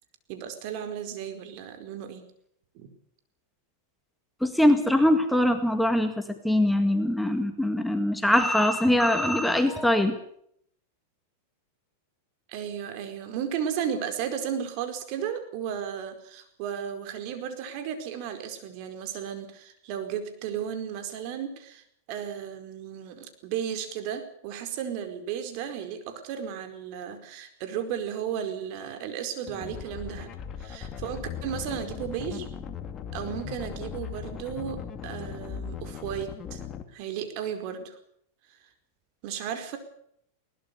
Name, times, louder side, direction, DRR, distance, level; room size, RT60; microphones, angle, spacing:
voice 1, 0.3-2.3 2.7-2.9 12.5-32.5 33.1-36.6 36.9-38.0 38.5-38.6 39.2-39.8, right 8 dB, 50° right, 8 dB, 4.7 m, -34 dB
voice 2, 4.4-10.2, left 1 dB, ahead, 7 dB, 2.0 m, -22 dB
sound 1, 29.5-36.8, left 8 dB, 30° left, 2.4 m, -38 dB
22.0 x 19.0 x 6.9 m, 0.69 s
supercardioid pair, 130°, 0 cm